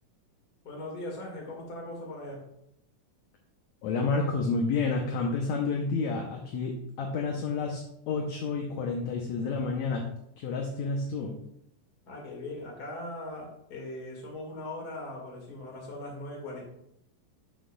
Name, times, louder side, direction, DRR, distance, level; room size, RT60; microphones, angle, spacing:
voice 1, 0.6-2.5 12.1-16.6, left 1 dB, 35° left, -2 dB, 2.0 m, -40 dB
voice 2, 3.8-10.0 10.4-11.3, left 4 dB, 75° left, 2 dB, 1.8 m, -30 dB
11.0 x 6.2 x 2.3 m, 0.76 s
omnidirectional pair, 3.9 m